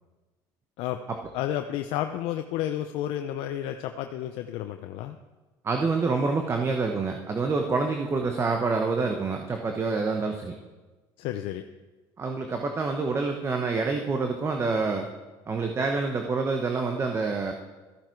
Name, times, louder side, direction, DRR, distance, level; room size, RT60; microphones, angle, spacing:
voice 1, 1.3-5.2 11.2-11.6, left 12 dB, 70° left, 7 dB, 0.6 m, -31 dB
voice 2, 5.6-10.5 12.2-15.1 15.5-17.5, right 4 dB, 25° right, 4 dB, 1.1 m, -27 dB
13.5 x 10.5 x 4.6 m, 1.2 s
supercardioid pair, 105°, 10 cm